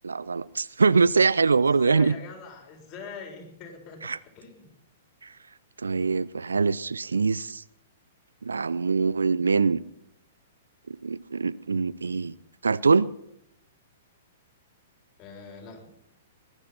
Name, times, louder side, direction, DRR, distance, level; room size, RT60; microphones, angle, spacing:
voice 1, 0.0-2.2 4.0-4.2 5.2-5.3 5.8-7.6 8.4-9.8 10.9-12.3 12.6-13.1, right 4 dB, 75° right, 0.5 m, -23 dB
voice 2, 1.8-4.1 4.4-4.7 15.2-15.9, left 5 dB, 30° left, 4.3 m, -42 dB
20.5 x 11.0 x 5.9 m
figure-of-eight pair, 110°, 0 cm